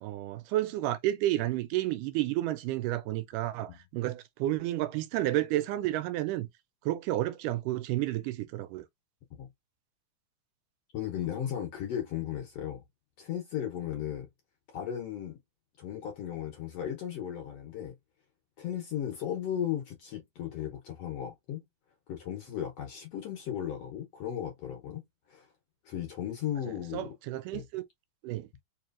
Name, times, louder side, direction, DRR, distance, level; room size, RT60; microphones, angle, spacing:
voice 1, 0.0-6.5 6.9-8.8 26.7-27.8 28.2-28.5, right 15 dB, 80° right, 2.0 m, -31 dB
voice 2, 10.9-12.8 13.2-14.3 14.7-15.4 15.8-17.9 18.6-21.6 22.1-25.0 25.3-25.5 25.8-27.1 27.5-27.6, left 10 dB, 65° left, 1.6 m, -36 dB
4.8 x 3.0 x 2.5 m
omnidirectional pair, 3.8 m